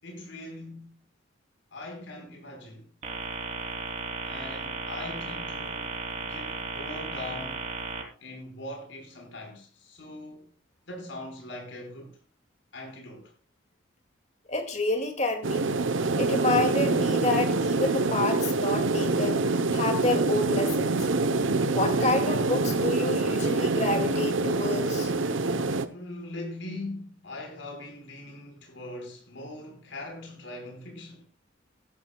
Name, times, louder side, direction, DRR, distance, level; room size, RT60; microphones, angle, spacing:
voice 1, 0.0-1.0 1.7-2.9 4.3-7.7 8.2-10.5 10.9-12.2 12.7-13.3 25.8-31.3, left 2 dB, 75° left, 5.2 m, -41 dB
sound 1, 3.0-8.0, right 4 dB, 40° right, 3.2 m, -35 dB
voice 2, 14.5-15.7 16.2-19.4 19.7-21.0 21.7-25.1, left 2 dB, 35° left, 2.3 m, -28 dB
sound 2, 15.4-25.8, right 3 dB, 85° right, 0.9 m, -26 dB
17.0 x 13.0 x 2.3 m
head